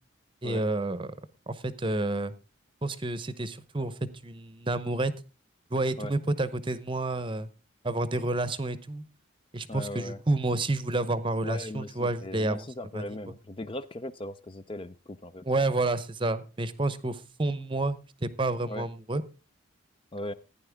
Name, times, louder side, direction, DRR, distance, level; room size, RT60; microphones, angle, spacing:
voice 1, 0.4-1.1 1.5-2.3 2.8-3.9 4.2-5.1 5.7-7.5 7.8-9.0 9.5-12.6 12.9-13.0 15.4-19.2, right 2 dB, 25° right, 15 dB, 0.8 m, -29 dB
voice 2, 9.7-10.2 11.4-15.4 18.6-18.9 20.1-20.3, left 1 dB, 25° left, 12 dB, 0.5 m, -38 dB
15.0 x 10.0 x 3.5 m, 0.32 s
head